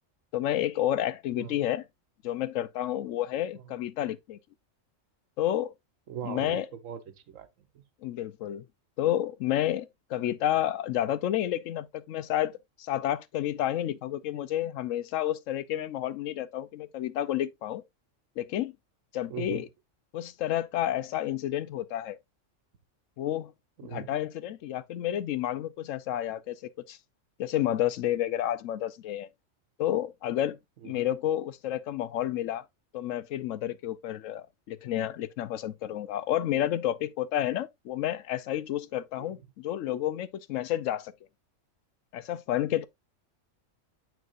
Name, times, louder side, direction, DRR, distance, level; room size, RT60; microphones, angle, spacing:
voice 1, 0.3-1.8 2.2-4.4 5.4-5.7 6.2-6.7 8.0-8.6 9.0-12.5 12.8-17.8 18.4-18.7 19.1-19.7 20.1-22.2 23.2-23.5 23.9-26.6 26.9-27.0 27.4-29.3 29.8-30.6 30.8-32.6 32.9-41.1 42.1-42.8, left 12 dB, 85° left, 1.0 m, -30 dB
voice 2, 6.1-7.8 19.3-19.6 23.8-24.1 30.8-31.0 39.2-39.5, right 9 dB, 85° right, 1.2 m, -41 dB
7.0 x 6.1 x 2.5 m
omnidirectional pair, 1.3 m